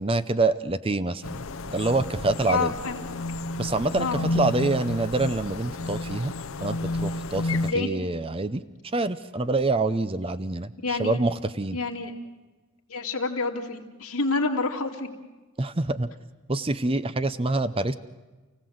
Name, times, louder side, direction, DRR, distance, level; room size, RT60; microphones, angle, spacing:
voice 1, 0.0-1.4 1.7-2.7 3.6-6.3 6.6-8.6 8.9-11.8 15.6-16.1 16.5-17.9, right 2 dB, 25° right, 12 dB, 0.6 m, -26 dB
sound 1, 1.2-7.7, left 2 dB, 65° left, 0.8 m, -31 dB
voice 2, 2.5-3.0 4.0-4.3 7.6-7.9 10.8-11.2 11.7-12.1 12.9-15.1, left 3 dB, 80° left, 1 dB, 2.8 m, -28 dB
29.0 x 17.0 x 7.9 m, 1.2 s
head